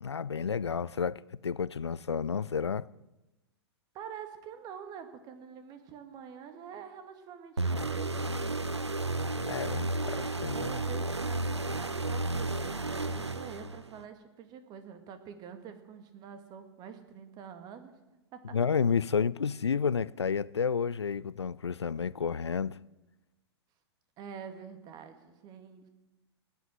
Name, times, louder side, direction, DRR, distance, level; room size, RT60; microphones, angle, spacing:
voice 1, 0.0-2.9 9.5-10.8 18.5-22.8, left 6 dB, 75° left, 0.4 m, -31 dB
voice 2, 3.9-8.4 10.5-17.9 18.3-18.6 24.2-25.9, right 7 dB, 30° right, 2.0 m, -46 dB
sound 1, 7.6-14.0, right 2 dB, 85° right, 0.7 m, -32 dB
18.0 x 8.2 x 7.6 m
figure-of-eight pair, 105°, 14 cm